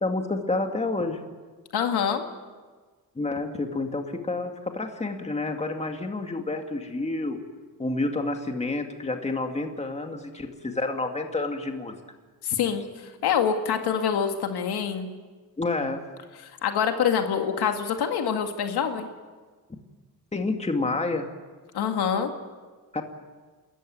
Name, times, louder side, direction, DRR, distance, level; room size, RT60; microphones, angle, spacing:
voice 1, 0.0-1.2 3.2-7.4 7.8-12.0 15.6-16.0 20.3-21.3 22.9-23.0, left 2 dB, 15° left, 4 dB, 2.3 m, -29 dB
voice 2, 1.7-2.2 12.4-15.1 16.6-19.1 21.7-22.3, left 7 dB, 85° left, 5 dB, 2.1 m, -25 dB
30.0 x 14.0 x 9.4 m, 1.4 s
cardioid pair, 125°, 38 cm